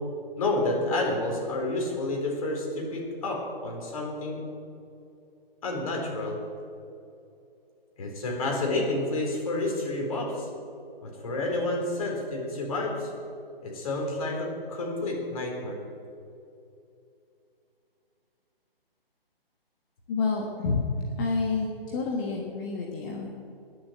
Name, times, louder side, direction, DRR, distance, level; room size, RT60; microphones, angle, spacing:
voice 1, 0.4-4.4 5.6-6.4 8.0-10.5 11.0-13.1 13.6-15.8, left 2 dB, 35° left, 0 dB, 4.0 m, -29 dB
voice 2, 20.1-20.8 21.2-23.3, left 4 dB, 20° left, -1 dB, 1.4 m, -29 dB
20.5 x 7.6 x 8.0 m, 2.7 s
figure-of-eight pair, 140°, 30 cm